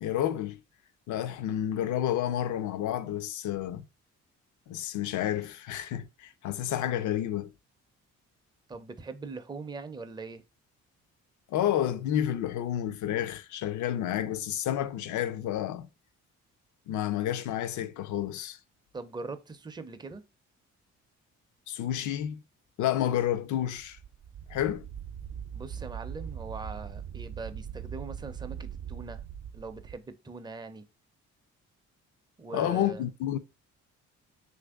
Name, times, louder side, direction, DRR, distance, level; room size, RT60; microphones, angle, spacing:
voice 1, 0.0-0.6 1.1-3.8 4.7-7.5 11.5-15.9 16.9-18.6 21.7-22.4 22.8-24.0 24.5-24.9 32.5-33.4, left 11 dB, 75° left, 0.5 m, -30 dB
voice 2, 8.7-10.4 18.9-20.2 25.5-29.2 29.5-30.8 32.4-33.1, right 4 dB, 15° right, 0.4 m, -41 dB
Wind, 23.6-30.0, right 8 dB, 60° right, 0.6 m, -41 dB
3.1 x 2.5 x 3.5 m
cardioid pair, 90°, 30 cm